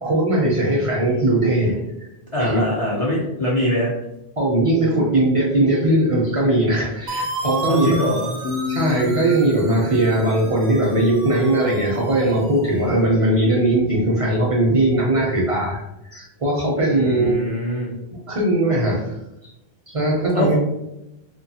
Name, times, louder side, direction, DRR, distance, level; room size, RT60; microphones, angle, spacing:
voice 1, 0.0-1.8 2.4-2.6 4.4-7.9 8.7-15.8 16.1-17.3 18.3-19.1 19.4-19.5 19.9-20.6, right 1 dB, 40° right, -4 dB, 0.5 m, -19 dB
voice 2, 2.3-3.9 7.7-8.4 16.9-18.0 20.3-20.6, left 1 dB, 45° left, -5 dB, 0.4 m, -23 dB
sound 1, 7.1-12.9, right 2 dB, 75° right, 0.8 m, -33 dB
sound 2, 8.4-11.9, left 5 dB, 75° left, 0.8 m, -33 dB
2.7 x 2.2 x 2.7 m, 0.89 s
omnidirectional pair, 1.1 m